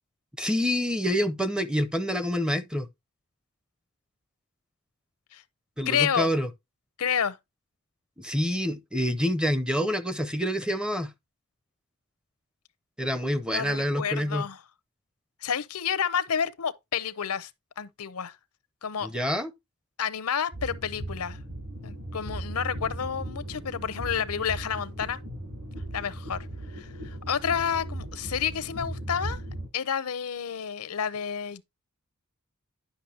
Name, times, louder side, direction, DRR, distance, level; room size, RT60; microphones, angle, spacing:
voice 1, 0.4-2.9 5.8-6.5 8.2-11.1 13.0-14.5 19.0-19.5, equal, 5° right, 0.5 m, -27 dB
voice 2, 5.9-6.3 7.0-7.4 13.5-14.6 15.4-17.5 17.8-18.4 18.8-19.1 20.0-21.4 21.8-25.2 25.9-26.4 26.7-29.4 29.7-31.6, left 7 dB, 90° left, 0.7 m, -30 dB
sound 1, 20.5-29.7, right 1 dB, 70° right, 6.2 m, -37 dB
10.0 x 5.9 x 2.8 m
head